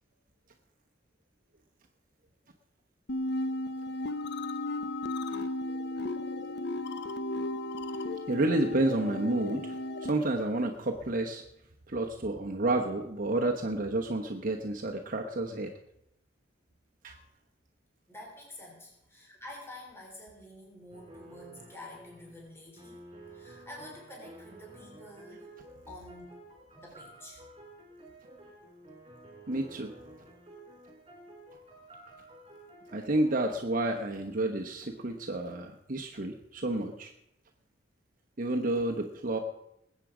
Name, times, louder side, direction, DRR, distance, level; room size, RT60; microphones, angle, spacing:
sound 1, 3.1-10.1, left 2 dB, 65° left, 0.9 m, -34 dB
voice 1, 8.3-11.4 11.9-15.7 17.0-17.2 29.5-29.9 32.9-37.1 38.4-39.4, right 2 dB, 45° right, 2 dB, 1.1 m, -30 dB
voice 2, 18.1-23.0 23.3-25.5 25.9-26.4 26.7-27.4, left 1 dB, 15° left, -2 dB, 3.6 m, -48 dB
sound 2, 20.9-33.7, right 1 dB, 30° right, 4.1 m, -52 dB
20.0 x 8.4 x 5.0 m, 0.80 s
head